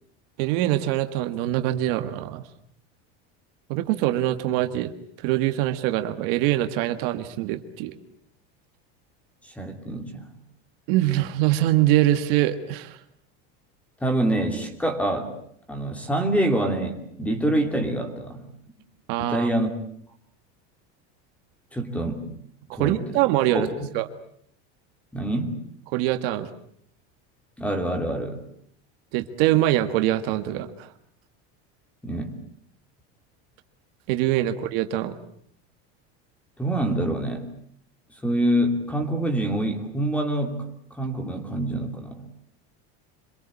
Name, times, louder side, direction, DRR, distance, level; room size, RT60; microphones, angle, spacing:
voice 1, 0.4-2.4 3.7-4.9 5.2-8.0 10.9-13.0 19.1-19.5 22.7-23.7 23.9-24.1 25.9-26.5 29.1-30.9 34.1-35.1, right 14 dB, 60° right, 9 dB, 1.8 m, -23 dB
voice 2, 9.4-10.3 14.0-15.3 15.7-18.4 19.2-19.7 21.7-22.3 22.7-23.0 23.5-23.7 25.1-25.6 27.6-28.4 32.0-32.4 36.6-37.5 38.2-40.6 40.9-42.2, right 1 dB, 5° left, 6 dB, 2.8 m, -26 dB
26.5 x 22.0 x 8.5 m, 0.66 s
cardioid pair, 175°, 32 cm